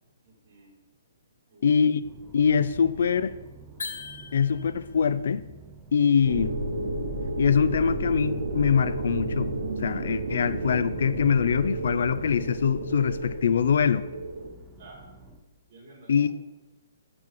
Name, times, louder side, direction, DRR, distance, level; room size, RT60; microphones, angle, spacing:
voice 1, 0.2-0.8 1.5-1.8 2.9-3.3 14.8-15.1 15.7-16.3, right 2 dB, 35° right, 2.1 m, -52 dB
voice 2, 1.6-2.0 2.3-3.3 4.3-5.4 5.9-6.6 7.4-9.5 9.8-14.1 16.1-16.3, left 7 dB, 65° left, 0.3 m, -23 dB
sound 1, 2.0-15.4, right 3 dB, 10° right, 0.5 m, -48 dB
sound 2, 3.8-4.9, left 4 dB, 85° left, 0.8 m, -38 dB
sound 3, 6.3-14.5, right 2 dB, 75° right, 1.1 m, -32 dB
5.5 x 4.8 x 4.6 m
hypercardioid pair, 165°, 0 cm